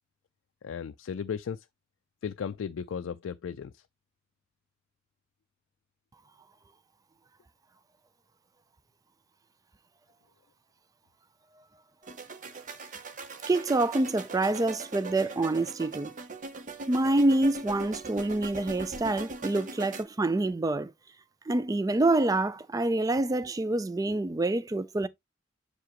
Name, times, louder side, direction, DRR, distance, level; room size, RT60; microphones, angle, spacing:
voice 1, 0.6-1.7 2.2-3.8, left 7 dB, 80° left, 0.4 m, -35 dB
sound 1, 12.0-20.0, right 3 dB, 40° right, 0.8 m, -41 dB
voice 2, 13.5-16.1 16.9-20.9 21.5-25.1, right 2 dB, 20° right, 0.4 m, -26 dB
6.9 x 4.8 x 2.9 m
head